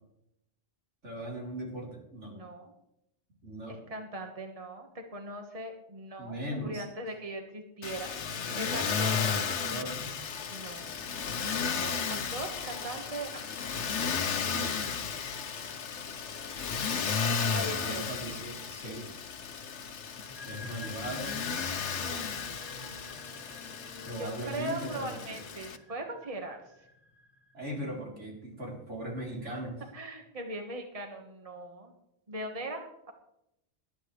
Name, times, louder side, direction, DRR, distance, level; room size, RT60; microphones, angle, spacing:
voice 1, 1.0-2.4 3.4-3.8 6.2-6.8 8.5-10.2 14.4-14.8 17.4-19.1 20.4-21.4 24.0-25.4 27.5-29.8, equal, 90° right, -3 dB, 4.1 m, -39 dB
voice 2, 2.3-2.7 3.7-8.1 8.5-9.3 10.5-13.4 17.5-18.0 18.8-18.9 22.0-26.6 27.8-27.9 29.9-31.9 32.3-33.1, right 1 dB, 30° right, 3 dB, 1.6 m, -40 dB
Motor vehicle (road), 7.8-25.8, left 6 dB, 80° left, 1.2 m, -34 dB
sound 1, 20.1-27.6, left 3 dB, 20° left, 1.7 m, -50 dB
19.0 x 12.0 x 3.3 m, 0.81 s
omnidirectional pair, 1.2 m